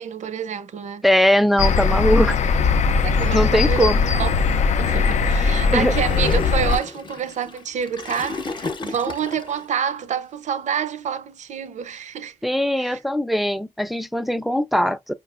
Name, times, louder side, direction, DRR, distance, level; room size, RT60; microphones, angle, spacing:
voice 1, 0.0-1.1 3.0-4.3 4.8-12.3 12.8-13.0, right 8 dB, 85° right, 0.5 m, -28 dB
voice 2, 1.0-2.4 3.3-4.0 5.7-6.0 12.4-15.1, equal, ahead, 0.4 m, -20 dB
sound 1, 1.6-6.8, left 5 dB, 75° left, 0.4 m, -19 dB
Gurgling / Toilet flush, 5.9-9.6, left 3 dB, 40° left, 0.7 m, -32 dB
5.2 x 2.4 x 2.4 m
wide cardioid pair, 95°, 12 cm